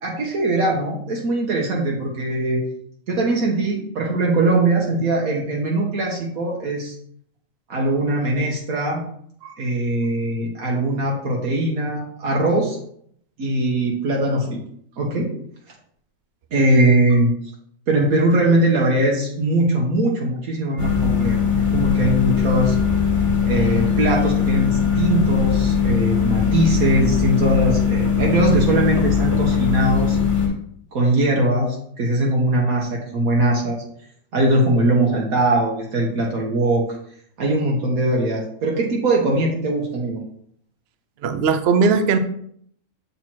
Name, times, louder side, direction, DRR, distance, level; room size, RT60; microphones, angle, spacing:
voice 1, 0.0-2.6 3.1-7.0 7.7-9.0 9.6-12.8 13.4-14.6 15.0-15.3 16.5-17.3 17.9-21.4 21.7-22.8 23.5-30.2 30.9-33.8 34.3-36.8 37.4-40.2, right 1 dB, 80° right, -2 dB, 1.5 m, -21 dB
sound 1, 20.8-30.5, left 6 dB, 25° left, 1.2 m, -20 dB
voice 2, 41.2-42.2, right 5 dB, 55° right, 8 dB, 0.8 m, -18 dB
7.3 x 4.2 x 4.5 m, 0.66 s
omnidirectional pair, 1.5 m